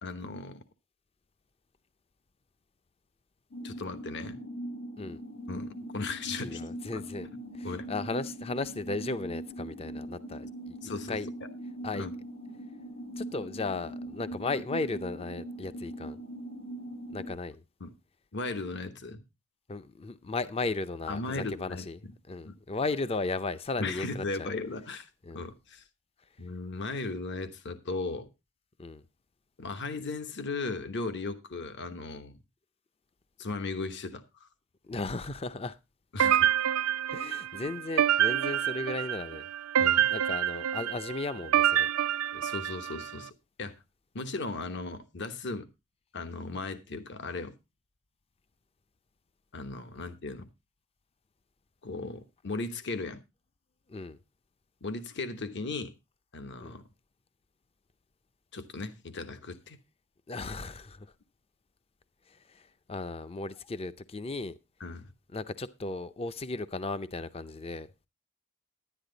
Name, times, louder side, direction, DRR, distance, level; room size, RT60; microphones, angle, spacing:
voice 1, 0.0-0.6 3.6-4.4 5.5-6.6 6.9-7.0 7.6-7.8 10.8-11.2 11.9-12.1 17.8-17.9 18.3-19.2 21.1-21.8 22.4-22.5 23.8-25.1 25.3-25.8 26.4-28.3 29.6-32.4 33.4-34.5 36.1-36.5 39.8-40.1 42.3-43.3 43.6-43.7 44.1-45.7 46.1-47.5 49.5-50.5 51.8-53.2 54.8-55.9 56.3-56.8 58.5-59.8 64.8-65.1, left 3 dB, 55° left, 1.1 m, -36 dB
sound 1, 3.5-17.3, right 1 dB, 90° left, 5.0 m, -41 dB
voice 2, 6.4-7.3 7.5-10.8 11.1-11.3 11.8-12.1 13.2-16.2 17.1-17.6 19.7-24.5 25.2-25.4 28.8-29.0 34.8-35.8 37.1-39.5 40.1-41.9 53.9-54.2 56.6-56.8 60.3-61.1 62.3-64.5 65.3-67.9, left 3 dB, 30° left, 0.5 m, -35 dB
sound 2, 36.2-43.1, right 10 dB, 85° right, 0.5 m, -27 dB
11.0 x 10.0 x 3.9 m
head